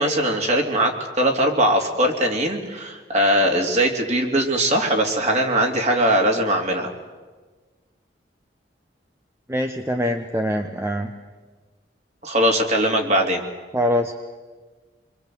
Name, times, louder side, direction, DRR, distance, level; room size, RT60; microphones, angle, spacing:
voice 1, 0.0-6.9 12.2-13.4, right 1 dB, 40° right, 2 dB, 3.1 m, -20 dB
voice 2, 9.5-11.1 13.7-14.1, equal, 15° right, 5 dB, 1.0 m, -23 dB
26.5 x 22.5 x 7.9 m, 1.4 s
head